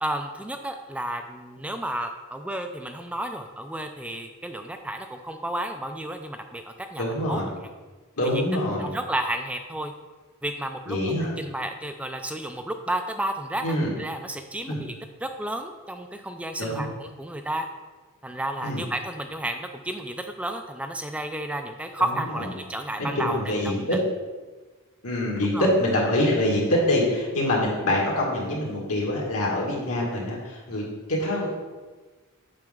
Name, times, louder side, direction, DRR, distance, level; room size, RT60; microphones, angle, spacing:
voice 1, 0.0-7.7 8.3-8.4 8.8-9.9 10.4-11.0 11.4-17.7 18.2-23.7 25.5-25.7, right 1 dB, 5° right, 6 dB, 0.3 m, -32 dB
voice 2, 7.0-7.5 8.2-8.9 10.9-11.3 13.6-13.9 14.7-14.8 16.6-16.8 18.6-18.8 22.0-22.5 23.0-24.0 25.0-30.8 31.1-31.5, left 1 dB, 85° left, -3 dB, 2.0 m, -25 dB
7.6 x 5.2 x 3.7 m, 1.3 s
head